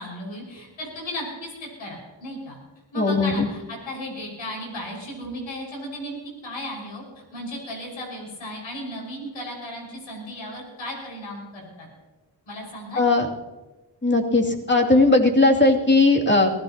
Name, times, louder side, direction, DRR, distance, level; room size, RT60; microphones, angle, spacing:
voice 1, 0.0-2.6 2.9-7.0 7.3-11.9 12.5-13.1, equal, 90° left, -1 dB, 5.9 m, -35 dB
voice 2, 3.0-3.5 13.0-13.3 14.0-16.5, left 2 dB, 25° left, 0 dB, 2.7 m, -18 dB
23.0 x 16.0 x 2.9 m, 1.1 s
cardioid pair, 50°, 45 cm